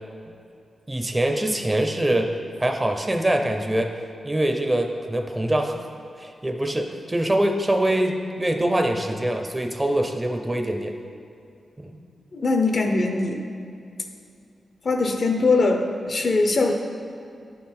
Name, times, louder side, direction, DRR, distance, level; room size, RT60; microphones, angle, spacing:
voice 1, 0.9-4.0 4.2-5.8 6.2-10.9 11.8-12.0, right 1 dB, 15° right, 4 dB, 0.5 m, -24 dB
voice 2, 12.3-13.4 14.8-16.7, left 3 dB, 50° left, 4 dB, 0.6 m, -21 dB
10.5 x 3.8 x 4.3 m, 2.5 s
wide cardioid pair, 110°, 0 cm